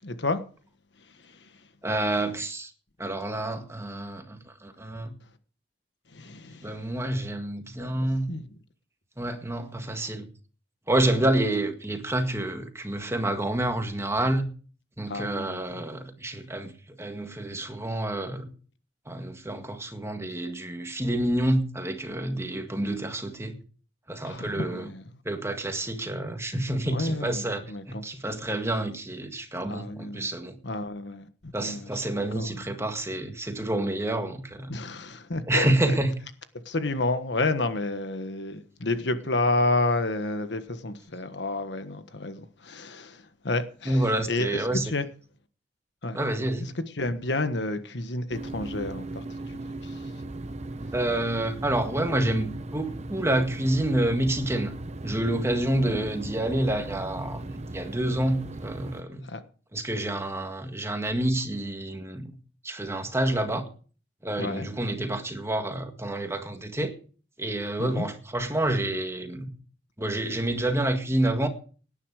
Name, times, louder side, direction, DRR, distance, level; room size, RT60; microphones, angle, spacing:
voice 1, 0.0-0.4 1.2-1.5 6.1-6.8 7.8-7.9 8.3-8.5 15.1-15.8 24.2-25.0 26.9-28.0 29.5-30.3 30.6-31.9 32.3-32.6 34.7-36.0 36.6-45.0 46.0-46.2 46.6-49.6 49.8-50.0 59.2-59.4 64.4-64.7 67.8-68.0, left 2 dB, 70° left, 1.4 m, -30 dB
voice 2, 1.8-2.7 3.0-5.1 6.6-8.3 9.2-10.3 10.9-14.5 15.0-16.7 17.0-18.5 19.1-23.6 24.1-24.9 25.3-30.6 31.5-34.8 35.5-36.1 43.9-44.9 46.2-46.7 50.9-54.7 55.0-59.3 59.7-62.3 62.6-63.7 64.2-66.9 67.4-69.6 70.0-71.5, right 1 dB, 15° right, 1.9 m, -28 dB
sound 1, 48.3-59.0, right 2 dB, 40° right, 1.0 m, -37 dB
18.0 x 9.9 x 4.9 m
head